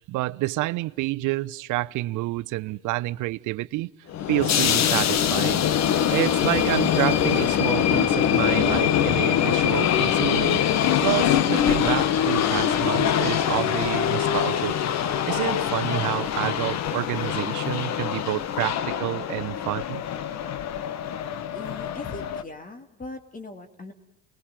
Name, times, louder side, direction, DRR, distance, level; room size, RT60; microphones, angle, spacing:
voice 1, 0.1-3.9 4.3-5.7 6.1-10.6 11.0-14.8 15.3-20.0, right 19 dB, 55° right, 0.9 m, -28 dB
sound 1, 4.1-22.4, left 9 dB, 45° left, 1.5 m, -23 dB
voice 2, 21.5-23.9, left 3 dB, 25° left, 2.8 m, -40 dB
28.5 x 20.5 x 9.1 m
supercardioid pair, 100°, 36 cm